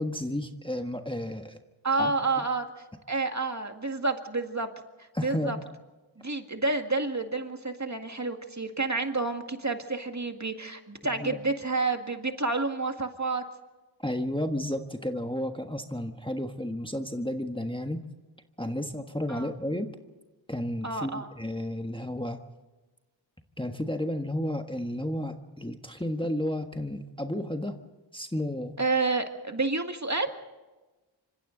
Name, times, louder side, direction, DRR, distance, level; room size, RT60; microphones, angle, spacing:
voice 1, 0.0-1.6 1.9-2.1 2.4-2.5 5.1-5.6 11.0-11.4 14.0-18.0 18.6-19.9 20.5-22.4 23.6-27.8 28.1-28.7, left 1 dB, 10° left, 5 dB, 1.4 m, -32 dB
voice 2, 1.8-2.7 3.1-4.7 5.0-5.6 6.2-13.4 19.3-19.5 20.8-21.3 28.8-30.3, right 3 dB, 35° right, 5 dB, 2.0 m, -29 dB
26.5 x 25.5 x 3.9 m, 1.2 s
wide cardioid pair, 50°, 46 cm